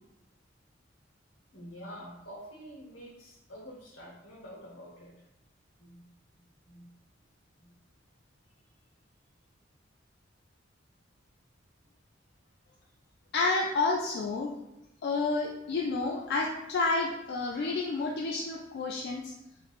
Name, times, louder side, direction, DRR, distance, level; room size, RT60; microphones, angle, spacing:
voice 1, 1.5-5.3 5.8-6.0 6.7-6.9 7.6-7.7, equal, 80° left, -2 dB, 1.0 m, -47 dB
voice 2, 13.3-14.5 15.0-19.3, left 3 dB, 60° left, 0 dB, 0.3 m, -30 dB
3.1 x 3.0 x 2.4 m, 0.88 s
head